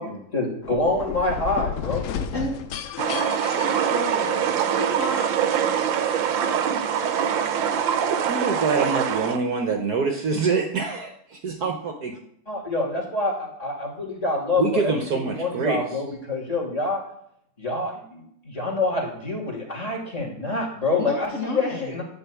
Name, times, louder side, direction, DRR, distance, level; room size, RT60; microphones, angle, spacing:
voice 1, 0.0-2.0 12.5-17.0 17.6-22.0, left 2 dB, 20° left, -1 dB, 2.5 m, -26 dB
sound 1, 0.6-4.6, left 8 dB, 90° left, 0.6 m, -32 dB
voice 2, 2.3-2.6 3.5-5.7 21.1-21.9, left 1 dB, 45° left, -1 dB, 1.6 m, -32 dB
sound 2, 3.0-9.4, right 8 dB, 75° right, 1.5 m, -24 dB
voice 3, 7.9-12.1 14.6-16.0, right 4 dB, 55° right, 4 dB, 1.4 m, -25 dB
11.0 x 4.9 x 8.3 m, 0.70 s
omnidirectional pair, 2.2 m